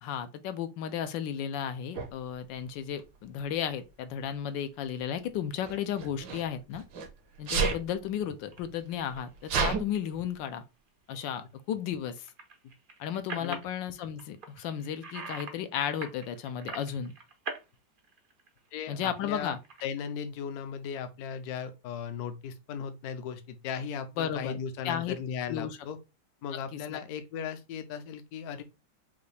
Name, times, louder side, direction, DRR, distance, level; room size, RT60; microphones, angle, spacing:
voice 1, 0.0-6.8 7.4-10.6 11.1-12.3 13.0-17.1 18.9-19.6 24.2-24.6 24.8-25.1 25.5-25.8 26.5-27.0, left 9 dB, 85° left, 1.3 m, -34 dB
Sneeze, 1.9-2.1 3.2-3.6 5.6-7.1 7.4-7.8 8.6-8.7 8.9-9.8, right 5 dB, 85° right, 1.7 m, -30 dB
sound 1, 8.5-8.6 9.2-9.4 9.9-10.2 12.1-13.7 14.2-15.5 15.8-17.6 18.0-19.8, right 4 dB, 70° right, 0.5 m, -42 dB
voice 2, 18.7-19.5 19.8-26.0 26.4-28.6, left 7 dB, 65° left, 1.0 m, -37 dB
5.5 x 2.3 x 3.2 m
omnidirectional pair, 2.0 m